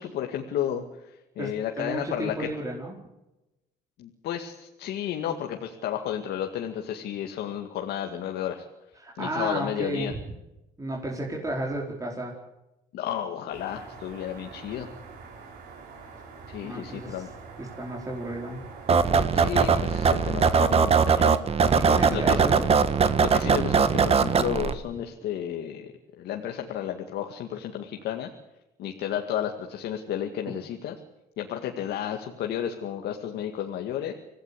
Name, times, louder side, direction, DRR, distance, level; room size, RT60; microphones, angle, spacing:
voice 1, 0.0-2.5 4.0-8.7 9.2-10.1 12.9-14.9 16.5-17.3 19.3-21.4 22.1-22.4 23.2-25.9 26.2-28.3 28.8-30.9 31.4-34.1, left 10 dB, 75° left, 3 dB, 2.1 m, -32 dB
voice 2, 1.8-2.9 9.0-10.1 10.8-12.3 16.6-17.2 17.6-18.6 21.7-22.7, right 1 dB, 20° right, -2 dB, 4.6 m, -32 dB
sound 1, 13.5-20.8, right 4 dB, 75° right, 6.4 m, -45 dB
sound 2, 18.9-24.7, right 6 dB, 35° right, 1.5 m, -21 dB
25.5 x 16.5 x 8.5 m, 0.95 s
cardioid pair, 110°, 17 cm